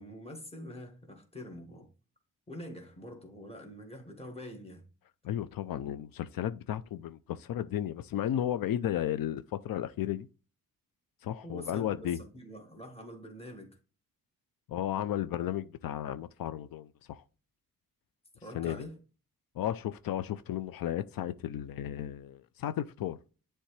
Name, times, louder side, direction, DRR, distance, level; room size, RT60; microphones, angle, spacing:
voice 1, 0.0-1.9 2.5-4.9 11.4-13.8 18.4-19.0, equal, 15° left, 1.5 m, -45 dB
voice 2, 5.2-10.3 11.2-12.2 14.7-16.9 17.2-17.3 18.5-18.8 19.6-23.2, left 11 dB, 85° left, 0.5 m, -34 dB
10.0 x 3.4 x 3.2 m
wide cardioid pair, 180°, 34 cm